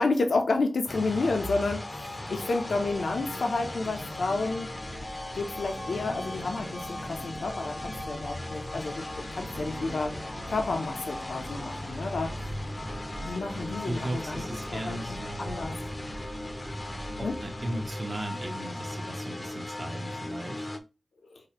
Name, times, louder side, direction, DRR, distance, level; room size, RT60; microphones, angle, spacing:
voice 1, 0.0-4.7 5.3-10.1 10.5-12.3 13.2-14.4 14.7-15.0 15.4-15.7 17.2-17.4 21.3-21.4, left 3 dB, 75° left, 0.5 m, -30 dB
sound 1, 0.9-20.8, left 1 dB, 30° left, 0.5 m, -38 dB
sound 2, 1.2-17.9, right 1 dB, 85° right, 0.9 m, -43 dB
voice 2, 13.8-15.7 17.2-20.7, right 1 dB, 40° right, 0.8 m, -37 dB
4.8 x 2.1 x 2.9 m
cardioid pair, 55°, 0 cm